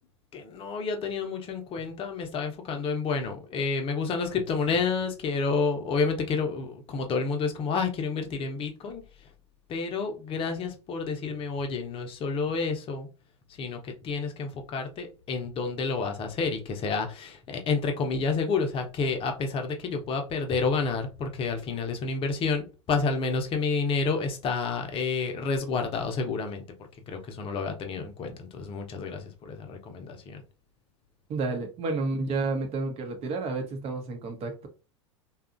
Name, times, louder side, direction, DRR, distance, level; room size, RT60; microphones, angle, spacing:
voice 1, 0.3-9.3 9.7-13.1 13.5-26.6 27.0-30.4, left 4 dB, 35° left, 0.7 m, -29 dB
voice 2, 31.3-34.7, right 3 dB, 40° right, 0.9 m, -30 dB
2.8 x 2.4 x 2.4 m
hypercardioid pair, 90°, 16 cm